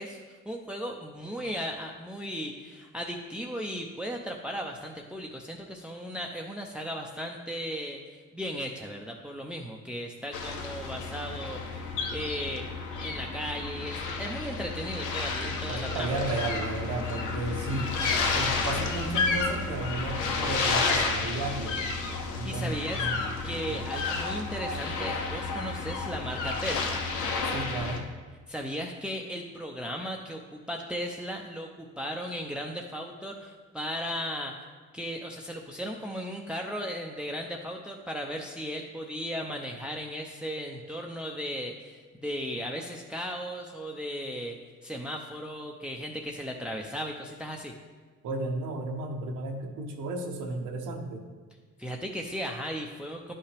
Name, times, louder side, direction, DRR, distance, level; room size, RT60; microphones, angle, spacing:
voice 1, 0.0-12.7 13.0-16.2 22.4-27.0 28.5-34.7 34.9-44.6 44.8-47.7 51.8-53.3, equal, 5° right, 1 dB, 0.6 m, -36 dB
sound 1, 10.3-28.0, left 4 dB, 85° left, 0.9 m, -31 dB
voice 2, 15.7-18.0 18.3-21.8 22.3-23.2 23.7-23.8 27.4-28.1 48.2-51.3, right 2 dB, 90° right, 2 dB, 1.1 m, -33 dB
10.5 x 5.6 x 3.4 m, 1.5 s
cardioid pair, 90°, 30 cm